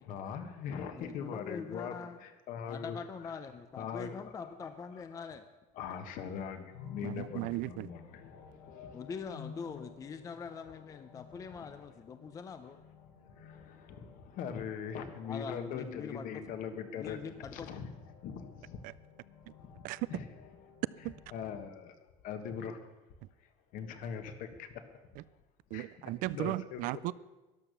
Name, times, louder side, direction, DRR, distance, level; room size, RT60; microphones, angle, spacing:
voice 1, 0.0-1.9 2.2-3.0 3.8-4.3 5.8-8.9 13.4-17.9 18.2-18.8 19.6-19.7 20.1-20.3 21.3-21.9 22.2-22.8 23.7-24.8 25.7-25.9 26.3-26.8, left 7 dB, 50° left, 8 dB, 1.5 m, -41 dB
voice 2, 0.9-2.2 2.7-5.4 8.9-12.8 15.2-16.4 16.9-17.7, left 6 dB, 20° left, 9 dB, 0.5 m, -43 dB
sound 1, 6.7-21.5, left 6 dB, 90° left, 4.1 m, -54 dB
voice 3, 7.0-7.9 18.8-18.9 19.8-20.1 21.0-21.2 25.2-25.3 25.7-27.1, right 19 dB, 55° right, 19 dB, 0.4 m, -36 dB
13.0 x 11.0 x 6.8 m, 1.1 s
cardioid pair, 160°, 17 cm